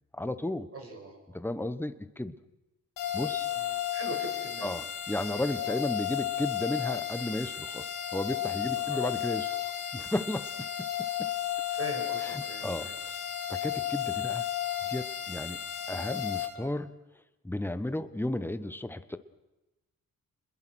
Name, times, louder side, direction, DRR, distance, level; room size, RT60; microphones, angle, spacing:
voice 1, 0.1-0.7 1.3-2.3 3.1-3.5 4.6-11.3 12.2-14.4 14.9-15.6 15.9-16.9 17.4-19.2, left 1 dB, 5° left, 12 dB, 1.3 m, -34 dB
voice 2, 0.7-1.2 3.5-4.7 8.8-9.2 11.7-12.9, right 1 dB, 45° right, 2 dB, 7.3 m, -42 dB
sound 1, 3.0-16.5, left 11 dB, 90° left, 3.5 m, -33 dB
28.0 x 21.5 x 6.4 m, 1.0 s
cardioid pair, 80°, 33 cm